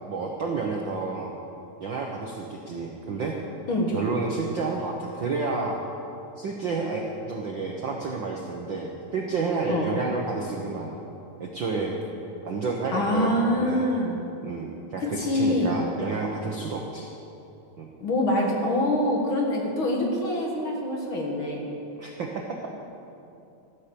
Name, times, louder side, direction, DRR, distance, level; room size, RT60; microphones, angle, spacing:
voice 1, 0.1-1.3 1.8-3.4 3.9-5.8 6.4-11.0 11.4-12.0 12.4-13.9 14.4-17.1 17.8-17.9 22.0-22.7, right 4 dB, 65° right, 0 dB, 1.2 m, -30 dB
voice 2, 12.9-14.2 15.2-15.8 18.0-21.7, left 1 dB, 50° left, 0 dB, 2.0 m, -25 dB
13.0 x 10.0 x 6.9 m, 2.7 s
omnidirectional pair, 3.4 m